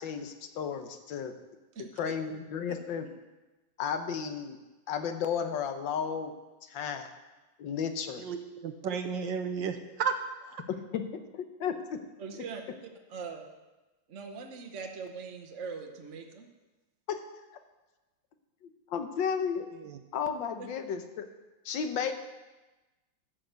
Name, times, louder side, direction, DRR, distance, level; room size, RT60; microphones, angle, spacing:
voice 1, 0.0-1.3 1.8-3.1 3.8-4.6 4.9-6.3 6.7-7.1 7.6-8.2 10.7-11.0 11.3-12.0 12.3-12.4 17.1-17.2 18.6-19.7 20.1-21.3 21.6-22.1, left 7 dB, 70° left, 7 dB, 1.6 m, -33 dB
voice 2, 1.7-2.1 12.2-12.6 13.1-13.4 14.1-16.5 20.6-20.7, right 5 dB, 45° right, 3 dB, 1.2 m, -41 dB
voice 3, 8.2-10.2 10.4-10.6 19.8-20.0, right 6 dB, 70° right, 5 dB, 1.5 m, -33 dB
12.5 x 6.4 x 8.0 m, 1.1 s
omnidirectional pair, 2.2 m